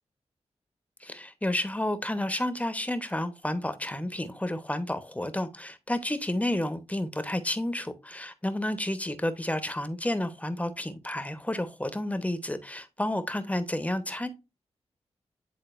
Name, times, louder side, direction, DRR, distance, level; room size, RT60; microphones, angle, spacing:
voice 1, 1.0-14.3, left 1 dB, 10° left, 1.0 m, -31 dB
9.9 x 3.8 x 2.5 m
cardioid pair, 60°, 12 cm